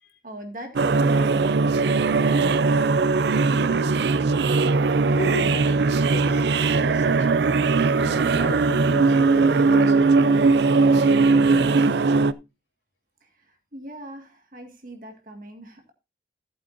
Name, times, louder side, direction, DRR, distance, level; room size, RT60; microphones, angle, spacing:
voice 1, 0.2-3.3 13.2-15.9, right 1 dB, 50° right, 4 dB, 1.8 m, -41 dB
sound 1, 0.8-12.3, right 4 dB, 70° right, 0.5 m, -19 dB
voice 2, 5.1-7.4 8.0-10.7 10.9-12.2, left 1 dB, 80° left, 3 dB, 2.5 m, -35 dB
15.0 x 8.3 x 2.6 m, 0.26 s
head